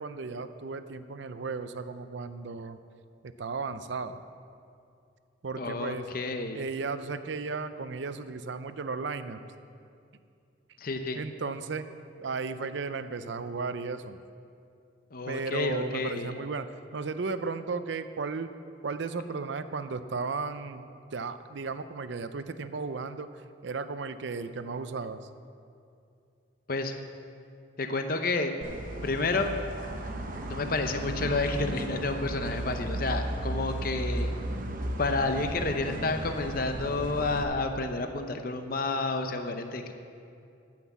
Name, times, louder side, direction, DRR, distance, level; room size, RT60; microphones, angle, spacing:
voice 1, 0.0-2.8 3.2-4.2 5.4-6.1 6.5-9.4 11.2-11.9 12.2-14.2 15.3-18.5 18.8-23.3 23.6-25.3, right 4 dB, 65° right, 11 dB, 0.5 m, -35 dB
voice 2, 5.6-6.6 10.8-11.2 15.1-16.3 26.7-26.9 27.8-28.5 29.0-29.5 30.4-34.3 35.0-39.9, left 3 dB, 50° left, 6 dB, 0.7 m, -30 dB
sound 1, 28.6-37.4, right 1 dB, 45° right, 0.9 m, -35 dB
14.0 x 6.0 x 7.3 m, 2.5 s
head